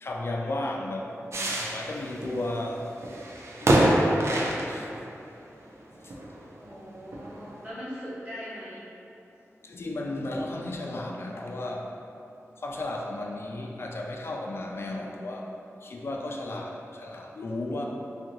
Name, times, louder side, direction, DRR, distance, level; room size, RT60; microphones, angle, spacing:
voice 1, 0.0-1.1 1.6-2.9 3.6-4.9 9.7-11.9 12.6-15.5 15.8-17.9, left 2 dB, 50° left, 0 dB, 0.3 m, -34 dB
sound 1, 1.3-5.2 5.8-5.9 6.1-6.7 7.1-7.6, right 1 dB, 60° right, 0.4 m, -26 dB
voice 2, 6.6-8.9, equal, 35° right, -13 dB, 1.5 m, -40 dB
2.7 x 2.5 x 2.8 m, 2.7 s
wide cardioid pair, 60°, 5 cm